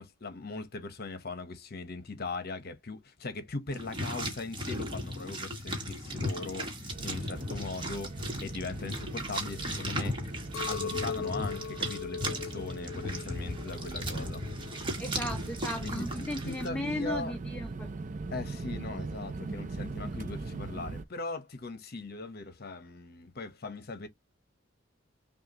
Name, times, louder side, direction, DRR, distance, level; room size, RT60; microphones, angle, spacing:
voice 1, 0.0-10.2 10.7-14.4 15.8-17.3 18.3-24.1, left 3 dB, 55° left, 1.0 m, -40 dB
sound 1, 3.7-16.7, equal, 25° right, 1.3 m, -36 dB
sound 2, 6.9-21.0, right 3 dB, 40° right, 0.5 m, -41 dB
Chink clink, 10.5-14.9 15.2-16.0, left 6 dB, 75° left, 0.4 m, -40 dB
voice 2, 15.0-17.9, left 1 dB, 10° left, 0.6 m, -36 dB
5.7 x 2.4 x 2.9 m
head